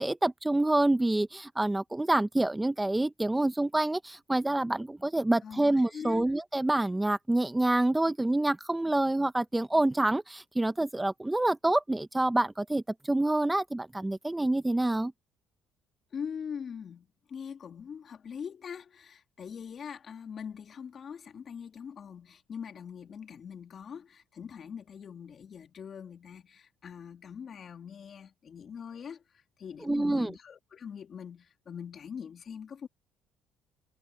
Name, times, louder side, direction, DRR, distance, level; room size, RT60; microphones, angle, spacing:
voice 1, 0.0-15.1 29.9-30.3, right 2 dB, 10° right, 0.8 m, -27 dB
voice 2, 5.9-6.3 16.1-32.9, left 7 dB, 45° left, 2.6 m, -42 dB
cardioid pair, 90°, 0 cm